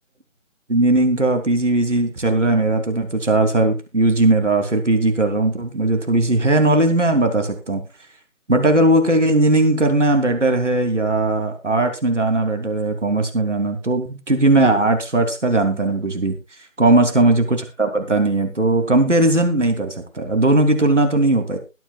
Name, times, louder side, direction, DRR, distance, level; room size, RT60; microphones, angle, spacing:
voice 1, 0.7-7.8 8.5-16.3 16.8-21.6, right 2 dB, 65° right, 6 dB, 3.2 m, -18 dB
21.5 x 9.5 x 2.4 m, 0.29 s
figure-of-eight pair, 160°, 39 cm